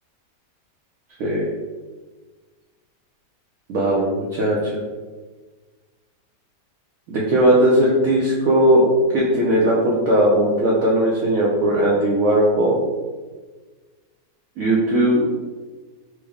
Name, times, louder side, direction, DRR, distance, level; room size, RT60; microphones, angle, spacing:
voice 1, 3.7-4.7 7.1-8.9 9.1-12.8 14.6-15.2, right 1 dB, 65° right, -5 dB, 0.9 m, -18 dB
4.5 x 2.1 x 3.4 m, 1.4 s
omnidirectional pair, 1.9 m